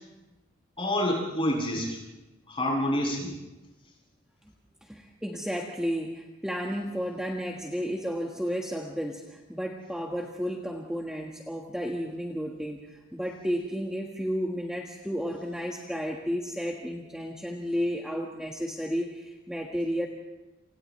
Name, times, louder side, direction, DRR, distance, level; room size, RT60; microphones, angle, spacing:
voice 1, 0.8-2.0 2.5-3.3, left 1 dB, 25° left, -2 dB, 7.7 m, -27 dB
voice 2, 4.8-20.1, equal, 5° right, -1 dB, 1.6 m, -32 dB
30.0 x 28.5 x 3.3 m, 1.0 s
head